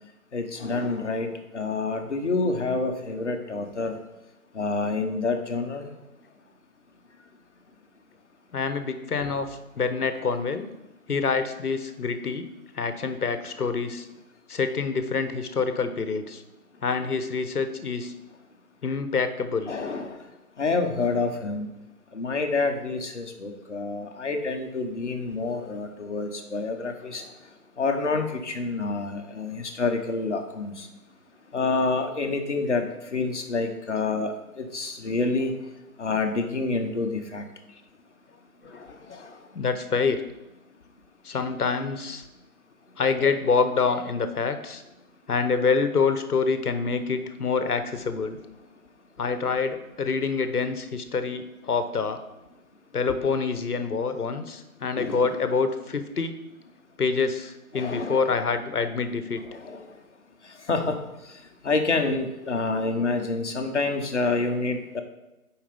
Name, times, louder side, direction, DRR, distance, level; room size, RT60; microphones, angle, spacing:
voice 1, 0.3-4.0 4.5-5.9 9.2-9.3 19.7-20.2 20.6-21.7 22.1-27.3 27.8-30.9 31.5-35.5 36.0-37.5 38.7-39.4 55.0-55.4 57.7-58.3 59.4-59.9 60.7-60.9 61.6-65.0, left 3 dB, 50° left, 5 dB, 1.0 m, -28 dB
voice 2, 8.5-10.7 11.1-12.5 12.7-14.1 14.5-16.4 16.8-18.1 18.8-19.7 38.6-38.8 39.1-39.2 39.5-40.2 41.2-42.2 43.0-44.8 45.3-48.4 49.2-52.2 52.9-56.3 57.0-59.4, left 5 dB, 75° left, 9 dB, 1.0 m, -26 dB
7.1 x 4.9 x 5.1 m, 0.97 s
figure-of-eight pair, 165°, 45 cm